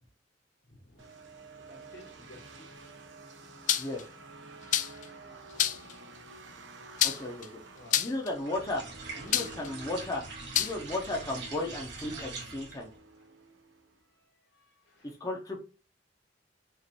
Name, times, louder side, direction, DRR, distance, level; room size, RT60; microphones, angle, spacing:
voice 1, 0.7-1.2 1.7-2.7 5.5-5.8 7.7-8.1 14.2-15.2, left 1 dB, 85° left, 0 dB, 1.9 m, -55 dB
sound 1, 1.0-14.0, right 3 dB, 85° right, 0.8 m, -50 dB
sound 2, 3.7-4.0 4.7-5.1 5.6-5.9 7.0-7.5 7.9-8.3 9.3-9.7 10.5-10.7, left 11 dB, 40° left, 0.3 m, -27 dB
voice 2, 7.0-7.5 7.9-8.8 9.2-10.2 10.5-12.9 15.0-15.6, left 2 dB, 20° left, -1 dB, 0.7 m, -35 dB
sound 3, 8.3-12.9, right 3 dB, 65° right, 1.6 m, -43 dB
5.1 x 2.6 x 2.9 m, 0.35 s
head